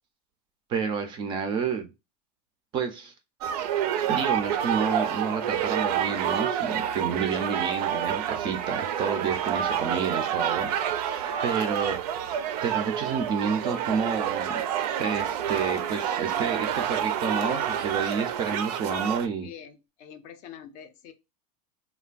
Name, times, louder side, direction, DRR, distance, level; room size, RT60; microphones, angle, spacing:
voice 1, 0.7-1.9 2.7-3.1 4.1-12.0 12.3-14.6 15.0-19.5, right 6 dB, 25° right, 0.4 m, -30 dB
sound 1, 3.4-19.3, right 9 dB, 80° right, 0.5 m, -28 dB
voice 2, 19.4-21.1, left 9 dB, 40° left, 0.4 m, -45 dB
3.2 x 2.2 x 2.3 m
supercardioid pair, 160°, 20 cm